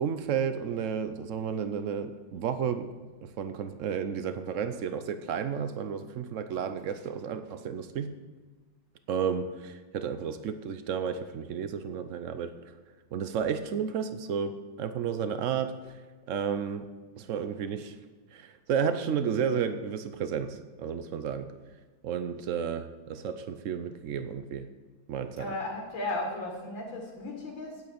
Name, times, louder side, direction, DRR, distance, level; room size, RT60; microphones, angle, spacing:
voice 1, 0.0-2.9 3.2-8.1 9.1-12.5 13.1-15.7 16.3-16.9 17.2-18.0 18.3-21.5 22.0-24.7 25.1-25.5, right 7 dB, 85° right, 10 dB, 0.6 m, -32 dB
voice 2, 25.4-27.8, left 2 dB, 75° left, -1 dB, 2.8 m, -35 dB
9.5 x 8.5 x 8.6 m, 1.3 s
omnidirectional pair, 2.2 m